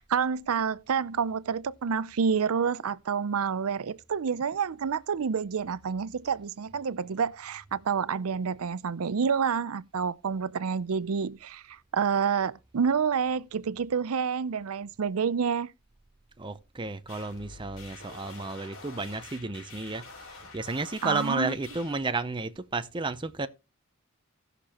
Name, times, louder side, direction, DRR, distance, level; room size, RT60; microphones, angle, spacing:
voice 1, 0.0-15.7 21.0-21.5, right 6 dB, 75° right, 0.5 m, -28 dB
voice 2, 16.4-20.0 20.3-23.5, right 3 dB, 20° right, 0.6 m, -32 dB
sound 1, 17.1-22.1, left 3 dB, 65° left, 5.3 m, -47 dB
17.5 x 6.7 x 2.9 m
head